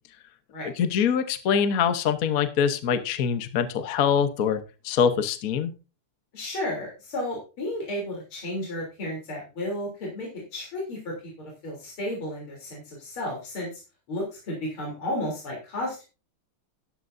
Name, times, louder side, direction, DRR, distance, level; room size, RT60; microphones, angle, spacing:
voice 1, 0.8-5.7, left 7 dB, 50° left, 9 dB, 1.2 m, -24 dB
voice 2, 6.3-11.1 11.6-13.7 14.1-16.0, left 1 dB, 70° left, -2 dB, 4.2 m, -33 dB
12.5 x 11.5 x 2.6 m, 0.31 s
omnidirectional pair, 2.4 m